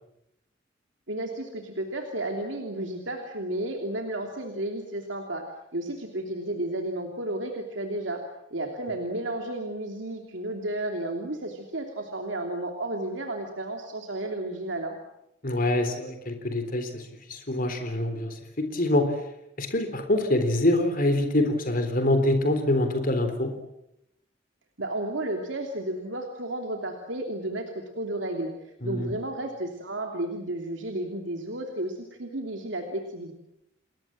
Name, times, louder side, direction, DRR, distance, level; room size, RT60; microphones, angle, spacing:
voice 1, 1.1-8.2 8.5-15.0 24.8-27.7 28.0-33.3, right 1 dB, 75° right, 3 dB, 3.1 m, -32 dB
voice 2, 15.4-17.0 17.3-19.2 19.6-23.5 28.8-29.1, left 1 dB, 50° left, 7 dB, 3.7 m, -25 dB
29.5 x 21.0 x 7.6 m, 0.82 s
head